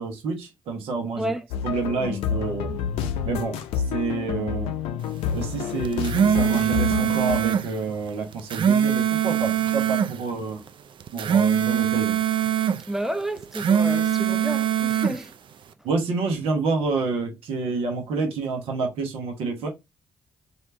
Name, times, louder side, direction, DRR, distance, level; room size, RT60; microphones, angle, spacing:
voice 1, 0.0-1.3 1.6-2.7 3.2-4.7 5.3-10.6 11.1-12.2 15.8-19.7, right 4 dB, 75° right, 1.1 m, -28 dB
sound 1, 1.5-7.4, left 7 dB, 80° left, 0.5 m, -29 dB
sound 2, 5.8-7.7 8.3-10.1 11.0-12.8 13.4-15.2, right 8 dB, 55° right, 0.4 m, -22 dB
voice 2, 12.9-15.3, right 1 dB, 5° right, 0.8 m, -30 dB
3.3 x 2.7 x 4.3 m
hypercardioid pair, 50°, 10 cm